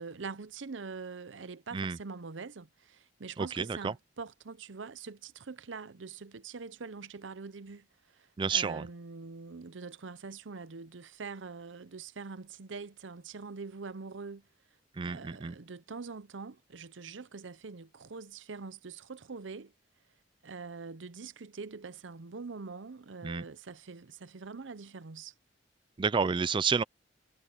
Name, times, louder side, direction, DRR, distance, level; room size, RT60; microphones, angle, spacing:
voice 1, 0.0-7.9 8.1-14.5 15.0-19.7 20.4-25.3, right 4 dB, 80° right, 0.7 m, -44 dB
voice 2, 3.4-3.9 8.4-8.9 14.9-15.6 23.2-23.4 26.0-26.8, right 5 dB, 25° right, 0.4 m, -30 dB
head